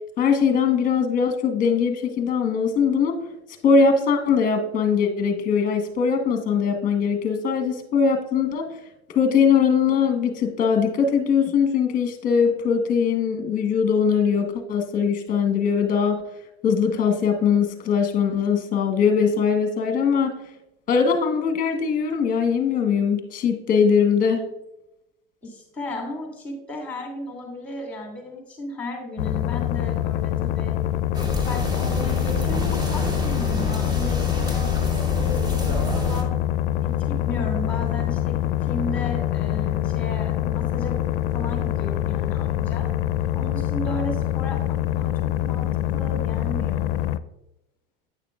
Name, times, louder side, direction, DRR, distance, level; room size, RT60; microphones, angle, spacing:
voice 1, 0.2-3.1 3.6-8.7 9.1-16.2 16.6-20.3 20.9-24.5, left 6 dB, 25° left, 6 dB, 1.2 m, -21 dB
voice 2, 25.4-30.8 31.4-34.7 35.1-36.3 36.8-41.0 41.3-42.9 43.3-45.1 45.4-47.0, left 1 dB, 5° left, 0 dB, 2.6 m, -34 dB
sound 1, 29.2-47.2, left 12 dB, 65° left, 0.4 m, -25 dB
sound 2, 31.1-36.2, left 1 dB, 15° right, 0.9 m, -28 dB
9.3 x 6.6 x 2.4 m, 0.92 s
hypercardioid pair, 120°, 31 cm